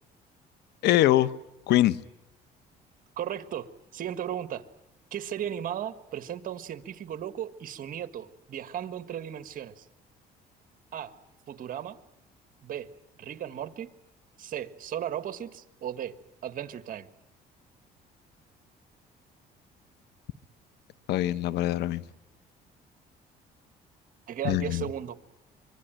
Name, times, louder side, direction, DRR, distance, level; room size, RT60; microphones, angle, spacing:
voice 1, 0.8-1.3 1.7-2.0 21.1-22.0 24.4-24.8, left 14 dB, 80° left, 1.1 m, -23 dB
voice 2, 3.2-4.6 5.1-9.8 10.9-11.1 11.5-12.0 12.6-12.9 13.2-13.9 14.4-16.1 16.4-17.1 24.3-25.1, right 10 dB, 55° right, 1.6 m, -36 dB
25.0 x 23.5 x 9.1 m
cardioid pair, 110°, 17 cm